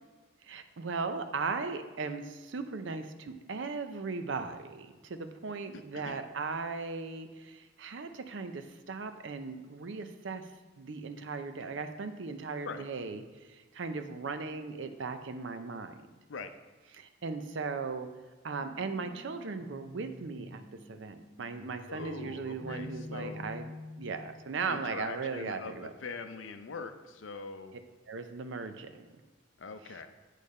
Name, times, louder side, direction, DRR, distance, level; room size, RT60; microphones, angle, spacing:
voice 1, 0.4-10.4 10.8-16.1 16.9-18.1 18.4-20.6 20.9-23.7 24.0-25.9 28.1-29.1 29.8-30.0, right 4 dB, 70° right, 8 dB, 0.5 m, -38 dB
voice 2, 5.7-6.2 12.6-12.8 16.3-16.5 21.9-23.4 24.7-27.7 29.6-30.1, left 4 dB, 80° left, 8 dB, 0.5 m, -42 dB
sound 1, 18.6-24.6, left 2 dB, 15° left, 0.3 m, -48 dB
8.5 x 3.3 x 5.3 m, 1.3 s
head